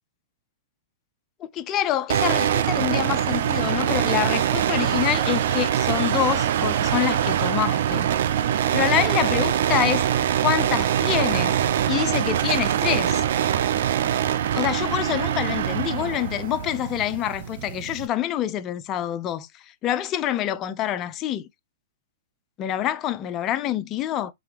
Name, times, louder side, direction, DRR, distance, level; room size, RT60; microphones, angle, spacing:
voice 1, 1.4-8.1 8.7-10.0 10.4-11.6 11.9-13.2 14.5-19.5 19.8-21.5 22.6-24.3, left 11 dB, 30° left, 0.5 m, -26 dB
sound 1, 2.1-18.1, right 10 dB, 65° right, 0.5 m, -23 dB
3.8 x 3.3 x 3.2 m
hypercardioid pair, 130°, 0 cm